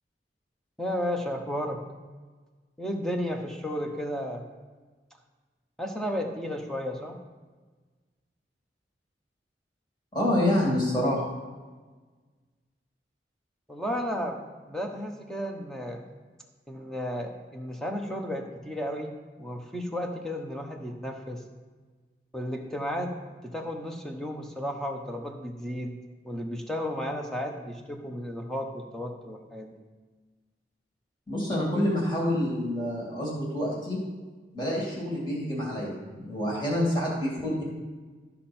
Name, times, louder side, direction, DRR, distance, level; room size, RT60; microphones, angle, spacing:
voice 1, 0.8-1.8 2.8-4.4 5.8-7.1 13.7-14.4 14.7-16.0 16.7-19.1 19.4-21.4 22.3-23.2 23.4-25.9 26.2-29.7, equal, 5° left, 2 dB, 1.0 m, -33 dB
voice 2, 10.1-11.2 31.3-34.0 34.5-37.6, left 1 dB, 25° left, -4 dB, 2.6 m, -27 dB
12.5 x 5.5 x 4.4 m, 1.4 s
head